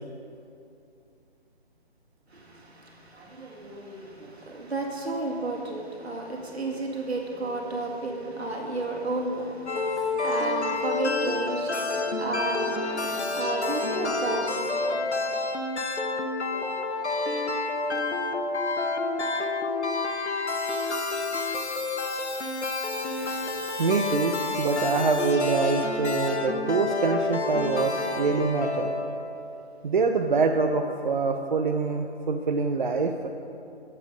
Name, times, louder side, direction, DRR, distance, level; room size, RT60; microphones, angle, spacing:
voice 1, 2.3-15.3 16.4-17.1, right 2 dB, 70° right, 0 dB, 1.9 m, -33 dB
sound 1, 9.7-29.6, left 3 dB, 90° left, 0.9 m, -29 dB
voice 2, 23.8-28.9 29.8-33.3, right 4 dB, 50° right, 4 dB, 0.5 m, -25 dB
9.7 x 7.6 x 5.1 m, 2.6 s
figure-of-eight pair, 145°, 33 cm